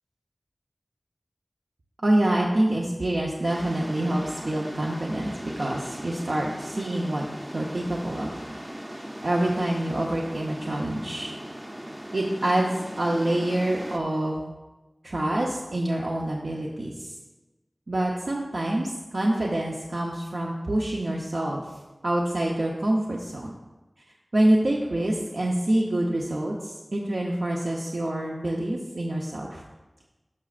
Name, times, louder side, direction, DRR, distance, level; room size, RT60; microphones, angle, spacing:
voice 1, 2.0-7.3 7.5-8.4 9.2-11.3 12.1-12.7 13.0-14.4 15.0-17.1 17.9-21.6 22.0-23.5 24.3-29.6, right 1 dB, 75° right, -2 dB, 0.8 m, -26 dB
sound 1, 3.5-14.0, equal, 15° right, 0.6 m, -39 dB
13.0 x 6.2 x 2.5 m, 1.1 s
wide cardioid pair, 60°, 0 cm